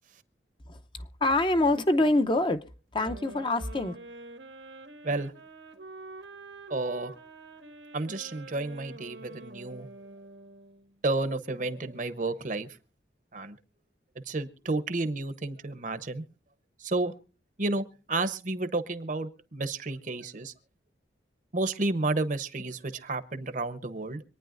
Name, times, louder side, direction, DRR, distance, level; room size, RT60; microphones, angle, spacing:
voice 1, 0.7-2.6 2.9-4.0, left 2 dB, 25° left, 0.7 m, -25 dB
sound 1, 3.0-10.9, right 2 dB, 85° right, 1.6 m, -46 dB
voice 2, 6.7-7.1 7.9-9.9 11.0-12.7 13.3-13.6 14.3-16.2 16.8-17.1 17.6-20.5 21.5-24.2, right 2 dB, 45° right, 0.9 m, -31 dB
25.5 x 9.7 x 2.5 m
head